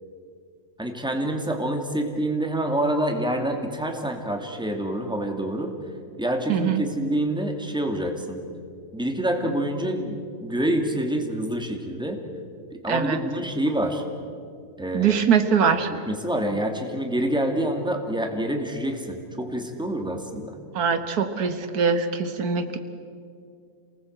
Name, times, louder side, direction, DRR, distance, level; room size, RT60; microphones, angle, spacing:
voice 1, 0.8-5.8 6.2-8.4 8.9-12.2 12.8-14.0 14.8-15.2 15.9-20.6, right 1 dB, 5° right, 3 dB, 2.3 m, -27 dB
voice 2, 6.5-6.8 12.9-13.2 14.9-15.9 20.7-22.8, right 6 dB, 90° right, 8 dB, 1.9 m, -22 dB
28.0 x 19.0 x 8.0 m, 2.3 s
omnidirectional pair, 1.6 m